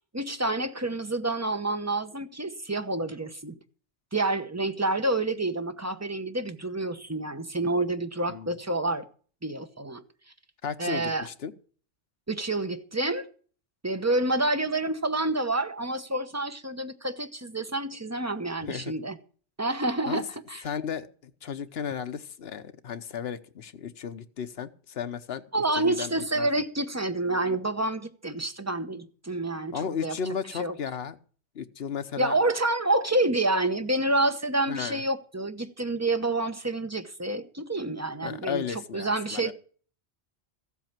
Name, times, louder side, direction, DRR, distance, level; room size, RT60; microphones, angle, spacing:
voice 1, 0.1-3.6 4.1-9.1 9.4-10.0 10.8-11.3 12.3-13.3 13.8-19.2 19.6-20.6 25.5-30.2 30.6-30.7 32.2-39.5, right 2 dB, 15° right, 0.9 m, -28 dB
voice 2, 10.6-11.5 18.6-18.9 20.1-20.2 20.6-25.5 25.8-26.5 29.7-31.2 31.5-32.3 34.7-35.0 38.2-39.5, left 7 dB, 65° left, 1.2 m, -34 dB
14.5 x 8.3 x 5.9 m
omnidirectional pair, 1.2 m